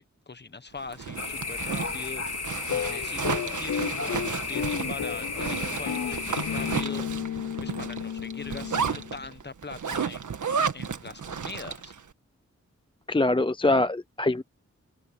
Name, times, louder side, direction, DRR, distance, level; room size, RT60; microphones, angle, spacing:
voice 1, 0.0-2.2 2.7-3.2 3.6-7.1 7.6-10.3 10.7-11.9, left 4 dB, 35° left, 1.3 m, -42 dB
Zipper (clothing), 0.8-12.0, right 6 dB, 85° right, 1.6 m, -33 dB
sound 1, 1.2-6.8, left 4 dB, 55° left, 2.9 m, -34 dB
sound 2, 2.7-9.2, left 9 dB, 75° left, 0.7 m, -33 dB
voice 2, 13.1-14.4, left 2 dB, 15° left, 0.6 m, -23 dB
open air
wide cardioid pair, 90°, 29 cm